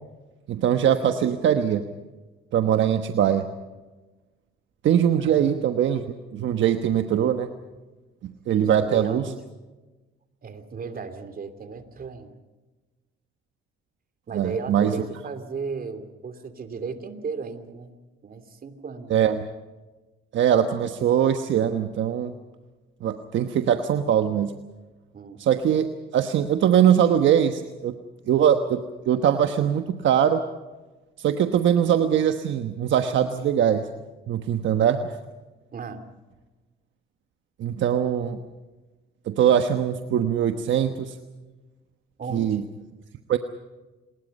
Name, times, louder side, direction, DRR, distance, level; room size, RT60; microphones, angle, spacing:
voice 1, 0.5-1.8 2.5-3.4 4.8-7.5 8.5-9.2 14.3-14.9 19.1-19.4 20.3-22.3 23.0-24.5 25.4-25.9 26.1-27.9 28.3-30.4 31.2-33.8 34.3-35.1 37.6-38.4 39.3-41.1 42.3-42.6 43.3-43.4, right 9 dB, 70° right, 7 dB, 1.2 m, -22 dB
voice 2, 5.2-5.7 8.7-9.4 10.4-12.3 14.3-18.0 18.2-19.3 25.1-25.4 35.7-36.1 42.2-42.7, right 5 dB, 45° right, 8 dB, 2.8 m, -35 dB
28.5 x 20.5 x 5.4 m, 1.2 s
cardioid pair, 90°, 20 cm